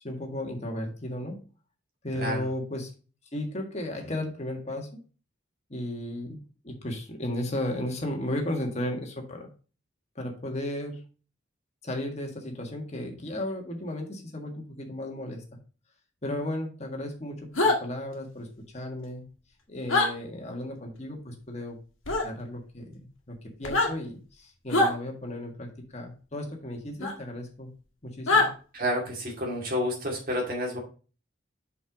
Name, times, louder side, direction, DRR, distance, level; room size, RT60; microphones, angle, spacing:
voice 1, 0.0-1.4 2.0-2.9 3.3-5.0 5.7-9.5 10.2-11.0 11.8-15.4 16.2-18.5 18.7-19.2 19.7-21.8 22.2-23.0 23.3-27.7 28.0-28.5, left 1 dB, 35° left, 2 dB, 1.6 m, -34 dB
voice 2, 2.1-2.5 28.7-30.8, equal, 45° right, 0 dB, 2.4 m, -30 dB
sound 1, 17.6-17.8 19.9-20.1 22.1-22.3 23.6-23.9 24.7-24.9 27.0-27.1 28.3-28.5, left 2 dB, 80° left, 1.7 m, -22 dB
5.5 x 5.4 x 5.1 m, 0.36 s
head